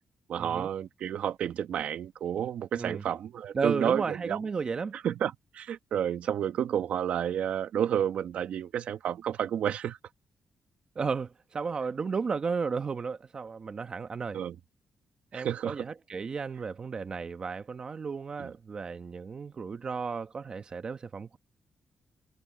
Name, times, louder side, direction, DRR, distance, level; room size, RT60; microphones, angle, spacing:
voice 1, 0.3-4.4 4.9-10.0 14.3-14.6 15.3-15.9 18.4-18.5, right 9 dB, 75° right, 1.3 m, -31 dB
voice 2, 3.5-5.0 10.9-14.4 15.3-21.4, right 5 dB, 40° right, 1.1 m, -33 dB
cardioid pair, 105°, 2 cm